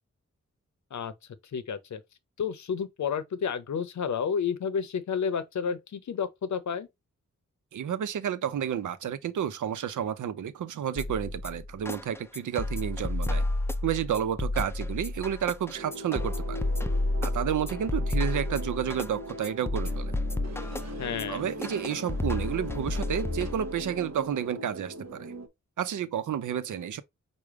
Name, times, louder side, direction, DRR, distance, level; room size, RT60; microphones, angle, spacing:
voice 1, 1.5-2.0 2.4-6.9 21.0-21.5, left 6 dB, 70° left, 0.7 m, -31 dB
voice 2, 7.7-13.4 13.8-16.6 17.2-20.1 21.3-25.3 25.8-27.0, right 9 dB, 85° right, 0.6 m, -31 dB
ring tone percussion, 11.0-23.9, left 2 dB, 10° left, 0.3 m, -31 dB
sound 1, 15.7-25.5, right 1 dB, 60° right, 1.0 m, -40 dB
5.0 x 2.2 x 4.7 m
wide cardioid pair, 95°, 30 cm